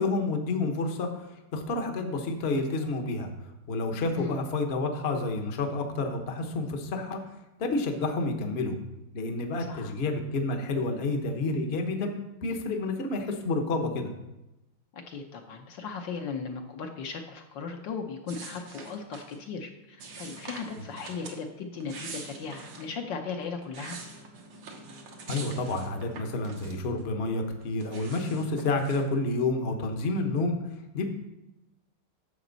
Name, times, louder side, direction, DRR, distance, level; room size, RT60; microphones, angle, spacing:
voice 1, 0.0-3.3 3.7-7.2 7.6-8.8 9.1-14.1 25.3-30.6 30.9-31.1, left 3 dB, 40° left, 4 dB, 0.9 m, -29 dB
voice 2, 14.9-24.0, left 5 dB, 65° left, 3 dB, 1.4 m, -37 dB
sound 1, 18.3-19.4 20.0-21.4 21.8-22.9 23.4-27.0 27.3-29.1, right 4 dB, 85° right, 2.2 m, -44 dB
10.5 x 7.1 x 4.0 m, 0.95 s
omnidirectional pair, 2.3 m